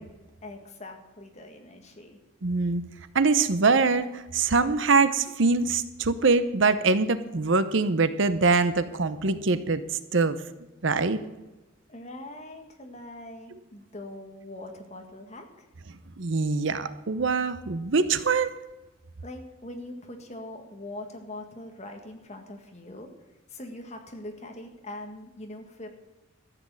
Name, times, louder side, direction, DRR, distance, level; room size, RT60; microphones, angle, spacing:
voice 1, 0.4-2.2 11.9-15.7 19.2-23.1 23.5-25.9, left 1 dB, 35° left, 4 dB, 1.8 m, -42 dB
voice 2, 2.4-2.8 3.1-9.8 10.1-10.4 10.8-11.2 16.2-18.5, right 4 dB, 65° right, 12 dB, 0.8 m, -23 dB
14.0 x 7.9 x 7.7 m, 1.1 s
head